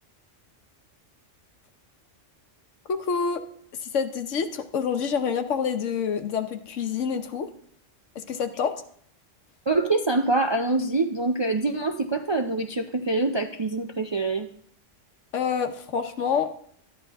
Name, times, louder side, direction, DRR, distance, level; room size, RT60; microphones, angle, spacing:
voice 1, 2.9-3.4 3.8-7.5 8.1-8.7 15.3-16.5, left 6 dB, 80° left, 8 dB, 1.2 m, -27 dB
voice 2, 9.7-14.5, right 3 dB, 45° right, 4 dB, 0.3 m, -25 dB
12.5 x 10.5 x 3.5 m, 0.63 s
omnidirectional pair, 1.3 m